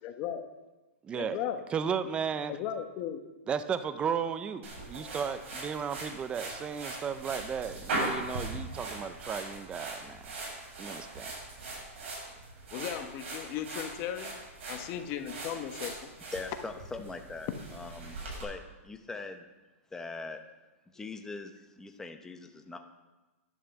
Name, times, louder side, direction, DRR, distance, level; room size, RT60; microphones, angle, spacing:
voice 1, 0.0-0.4 1.1-1.6 2.5-3.2 12.7-14.4 14.7-16.1, left 10 dB, 30° left, 7 dB, 1.1 m, -36 dB
voice 2, 1.0-1.4 1.7-2.6 3.5-10.2 10.8-11.4, right 7 dB, 15° right, 12 dB, 0.6 m, -34 dB
sound 1, 4.6-18.4, right 2 dB, 60° right, 6.2 m, -40 dB
voice 3, 16.2-19.4 19.9-20.4 20.9-22.8, left 3 dB, 5° left, 5 dB, 0.9 m, -42 dB
11.0 x 11.0 x 7.0 m, 1.1 s
hypercardioid pair, 155°, 8 cm